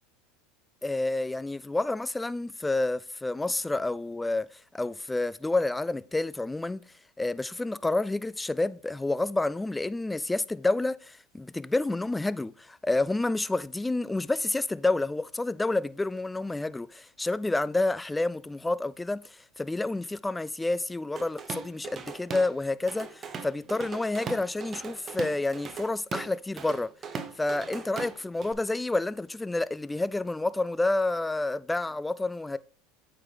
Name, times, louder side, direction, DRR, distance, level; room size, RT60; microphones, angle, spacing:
voice 1, 0.8-4.5 4.7-6.8 7.2-26.9 27.4-32.6, left 2 dB, 10° left, 0.3 m, -29 dB
Drum kit / Drum, 21.2-22.5 22.9-28.5, right 5 dB, 35° right, 0.7 m, -39 dB
8.4 x 3.9 x 3.3 m
hypercardioid pair, 85°, 0 cm